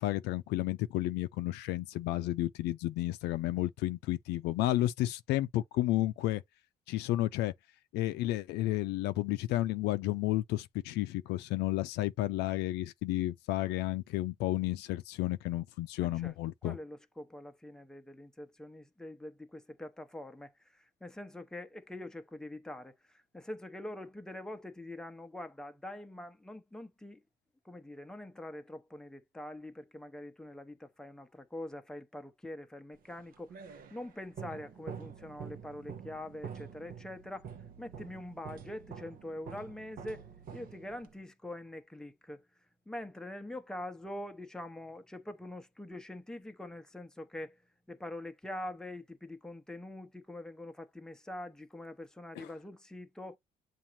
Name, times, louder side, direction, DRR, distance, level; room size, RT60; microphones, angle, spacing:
voice 1, 0.0-6.4 6.9-7.5 7.9-16.8 52.4-52.5, left 15 dB, 85° left, 0.5 m, -32 dB
voice 2, 16.0-16.3 16.6-27.2 27.6-37.5 37.8-40.3 40.5-42.4 42.9-47.6 47.9-53.4, left 1 dB, 5° left, 0.8 m, -44 dB
sound 1, 33.1-41.2, right 7 dB, 55° right, 0.8 m, -47 dB
7.2 x 2.5 x 2.9 m
cardioid pair, 110°, 17 cm